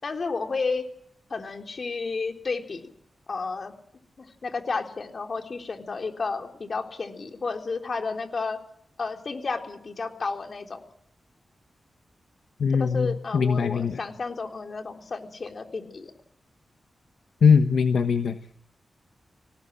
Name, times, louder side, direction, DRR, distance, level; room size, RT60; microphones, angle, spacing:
voice 1, 0.0-0.9 1.3-2.8 3.3-3.7 4.2-8.6 9.0-10.8 12.8-16.1, left 4 dB, 55° left, 4 dB, 3.7 m, -32 dB
voice 2, 12.6-14.0 17.4-18.4, left 6 dB, 80° left, 8 dB, 1.2 m, -21 dB
24.5 x 18.5 x 7.7 m, 0.70 s
cardioid pair, 60°, 0 cm